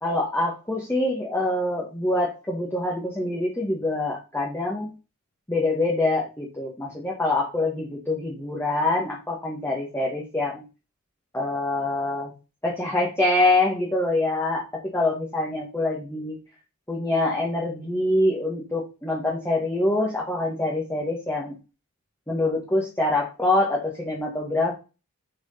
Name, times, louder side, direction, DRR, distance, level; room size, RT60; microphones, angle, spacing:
voice 1, 0.0-4.9 5.5-10.6 11.3-12.3 12.6-14.6 14.9-16.4 16.9-21.5 22.3-24.7, left 2 dB, 10° left, -3 dB, 1.6 m, -25 dB
7.1 x 4.8 x 5.7 m, 0.31 s
head